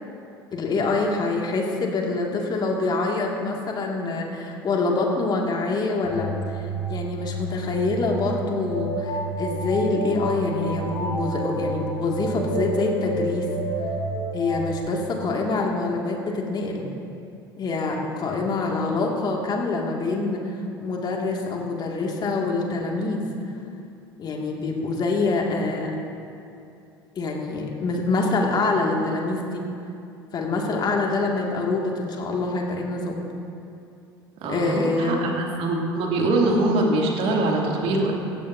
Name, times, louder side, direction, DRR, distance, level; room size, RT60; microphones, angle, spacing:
voice 1, 0.5-6.6 6.9-13.5 14.3-16.8 17.6-23.2 24.2-25.9 27.2-29.6 30.3-33.2 34.5-35.3, left 3 dB, 35° left, 0 dB, 2.3 m, -25 dB
sound 1, 6.0-14.8, right 1 dB, 70° left, 3.6 m, -30 dB
voice 2, 34.4-38.1, right 2 dB, 50° right, -1 dB, 2.8 m, -23 dB
17.0 x 15.0 x 2.8 m, 2.6 s
figure-of-eight pair, 70°, 12 cm